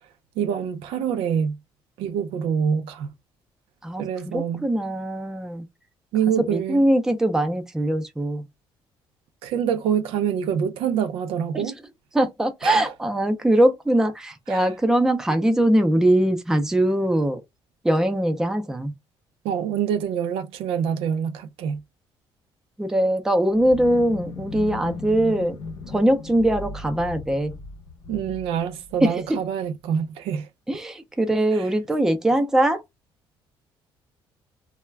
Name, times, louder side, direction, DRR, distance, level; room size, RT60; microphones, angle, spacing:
voice 1, 0.4-1.6 2.0-3.1 4.0-4.7 6.1-6.8 9.4-11.8 12.6-12.8 14.5-14.6 19.4-21.8 28.1-30.5 31.5-31.7, right 8 dB, 90° right, 0.4 m, -25 dB
voice 2, 3.8-5.6 6.4-8.5 11.5-11.7 12.1-17.4 17.8-18.9 22.8-25.6 25.9-27.6 29.0-29.4 30.7-32.8, right 1 dB, 5° right, 0.4 m, -21 dB
sound 1, 23.5-29.5, left 4 dB, 65° left, 0.7 m, -37 dB
2.3 x 2.1 x 3.2 m
cardioid pair, 150°, 9 cm